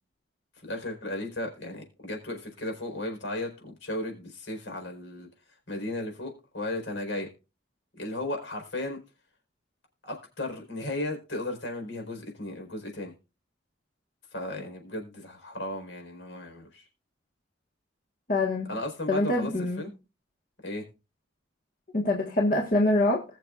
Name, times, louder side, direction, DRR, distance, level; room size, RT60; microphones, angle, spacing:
voice 1, 0.6-5.3 5.7-7.3 8.0-9.0 10.0-13.1 14.3-16.8 18.6-19.9 20.6-20.8, left 1 dB, 80° left, 4.6 m, -35 dB
voice 2, 18.3-18.7 19.1-19.8 21.9-23.2, left 2 dB, 50° left, 1.6 m, -25 dB
20.5 x 6.9 x 2.5 m
head